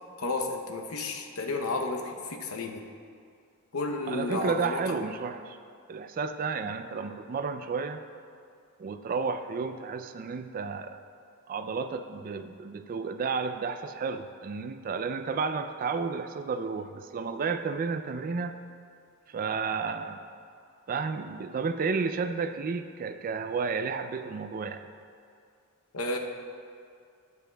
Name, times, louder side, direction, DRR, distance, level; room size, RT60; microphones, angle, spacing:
voice 1, 0.2-2.9 3.7-5.0 6.6-6.7 25.9-26.2, left 2 dB, 80° left, 3 dB, 0.7 m, -32 dB
voice 2, 4.1-5.6 5.9-8.0 8.8-11.0 11.5-18.5 19.3-20.2 20.9-24.9, right 5 dB, 40° right, 9 dB, 0.3 m, -32 dB
12.0 x 8.2 x 2.2 m, 2.3 s
head